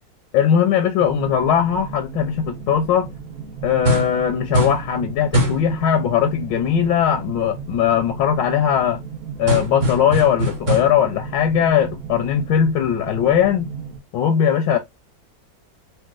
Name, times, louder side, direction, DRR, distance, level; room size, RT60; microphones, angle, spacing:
voice 1, 0.3-3.1 3.6-9.0 9.4-13.7 14.1-14.8, left 8 dB, 80° left, 1.2 m, -19 dB
sound 1, 1.0-14.0, right 6 dB, 65° right, 0.5 m, -35 dB
sound 2, 3.8-4.2 4.5-4.9 5.3-5.7 9.5-11.1, equal, 45° right, 0.9 m, -22 dB
4.1 x 2.1 x 2.3 m
omnidirectional pair, 2.0 m